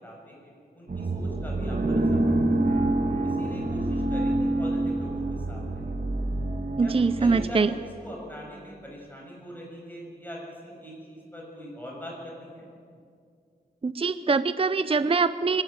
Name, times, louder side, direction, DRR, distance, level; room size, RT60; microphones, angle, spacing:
voice 1, 0.0-2.6 3.2-5.8 6.8-12.7, equal, 10° left, -2 dB, 6.9 m, -42 dB
sound 1, 0.9-7.5, right 2 dB, 55° right, 1.7 m, -26 dB
voice 2, 6.8-7.7 13.8-15.6, right 4 dB, 35° right, 13 dB, 0.5 m, -23 dB
24.5 x 12.5 x 8.9 m, 2.3 s
wide cardioid pair, 80°, 18 cm